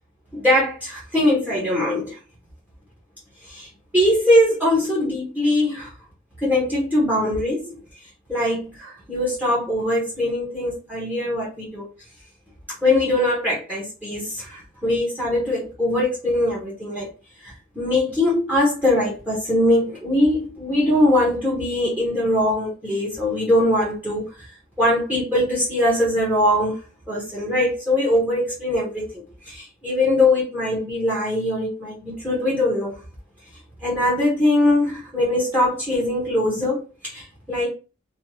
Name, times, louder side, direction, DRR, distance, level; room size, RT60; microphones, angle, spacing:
voice 1, 0.3-2.2 3.5-3.7 3.9-5.9 6.4-7.8 8.3-11.9 12.8-17.1 17.4-24.3 24.8-26.8 27.1-33.0 33.8-37.7, left 1 dB, 10° right, -5 dB, 1.0 m, -21 dB
3.1 x 2.3 x 2.8 m, 0.32 s
head